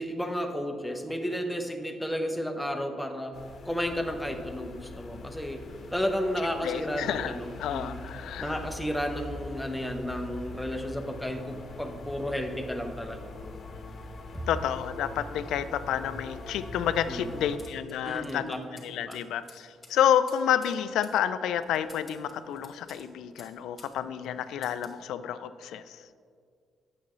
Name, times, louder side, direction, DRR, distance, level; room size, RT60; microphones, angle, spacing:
voice 1, 0.0-3.4 3.6-5.6 5.9-8.0 8.4-13.3 14.3-14.4 17.1-17.5 18.0-18.6 19.0-19.2, equal, 5° left, 4 dB, 0.8 m, -32 dB
sound 1, 3.3-17.6, left 3 dB, 55° left, 0.9 m, -43 dB
voice 2, 6.6-8.6 14.5-26.0, left 9 dB, 85° left, 13 dB, 0.3 m, -30 dB
sound 2, 17.6-24.0 24.2-25.0, left 2 dB, 20° left, 1.8 m, -54 dB
8.5 x 7.2 x 3.1 m, 2.2 s
cardioid pair, 90°, 0 cm